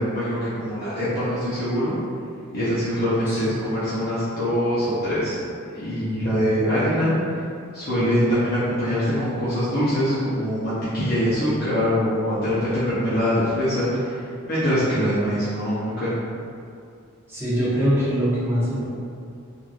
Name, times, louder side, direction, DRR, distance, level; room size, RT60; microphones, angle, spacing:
voice 1, 0.1-1.9 2.5-5.4 5.7-7.1 7.7-14.2 14.5-16.1, equal, 45° left, -12 dB, 0.6 m, -23 dB
voice 2, 3.3-3.6 17.3-18.8, equal, 10° right, -12 dB, 0.9 m, -23 dB
3.1 x 2.5 x 2.3 m, 2.4 s
head